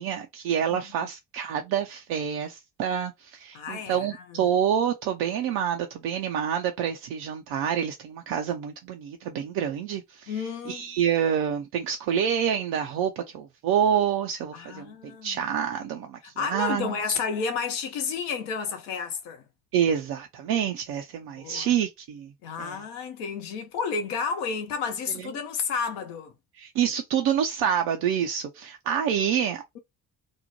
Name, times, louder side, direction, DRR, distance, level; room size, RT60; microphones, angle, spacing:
voice 1, 0.0-10.3 10.7-14.9 15.2-17.2 19.7-22.3 22.6-22.8 25.2-25.3 26.5-29.6, right 8 dB, 55° right, 0.5 m, -27 dB
voice 2, 0.7-1.1 3.5-4.6 10.3-10.9 14.5-15.4 16.4-19.5 21.3-21.7 22.4-26.3, left 6 dB, 65° left, 0.8 m, -31 dB
2.6 x 2.1 x 2.9 m
figure-of-eight pair, 40°, 46 cm